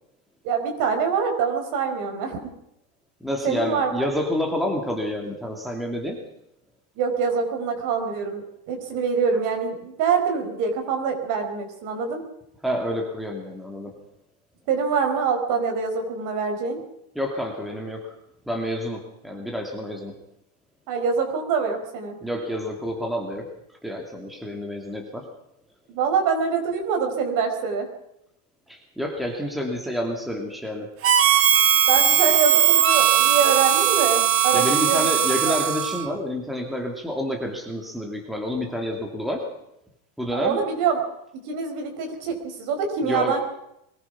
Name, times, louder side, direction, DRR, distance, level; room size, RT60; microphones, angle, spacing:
voice 1, 0.4-2.4 3.4-4.1 7.0-12.2 14.7-16.8 20.9-22.2 25.9-27.9 31.9-35.1 35.5-35.6 40.3-41.1 41.5-43.4, right 6 dB, 50° right, 4 dB, 5.1 m, -25 dB
voice 2, 3.2-6.2 12.6-13.9 17.1-18.2 18.5-20.2 22.2-23.5 23.8-25.3 28.7-30.9 34.5-39.4 40.2-40.6 43.0-43.4, equal, ahead, 1 dB, 2.7 m, -28 dB
Harmonica, 31.0-36.1, right 10 dB, 35° right, 1.5 m, -19 dB
22.5 x 19.5 x 6.0 m, 0.79 s
cardioid pair, 160°, 40 cm